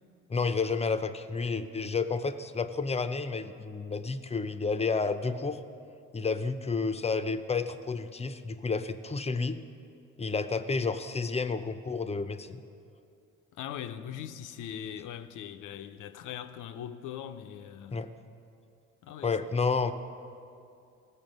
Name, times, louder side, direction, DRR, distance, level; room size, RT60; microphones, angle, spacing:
voice 1, 0.3-5.6 6.1-9.6 10.2-12.6 17.9-18.1 19.2-19.9, left 4 dB, 20° left, 0.6 m, -30 dB
voice 2, 13.5-18.0 19.0-19.4, left 9 dB, 85° left, 0.7 m, -41 dB
17.5 x 6.8 x 5.3 m
cardioid pair, 90°, 30 cm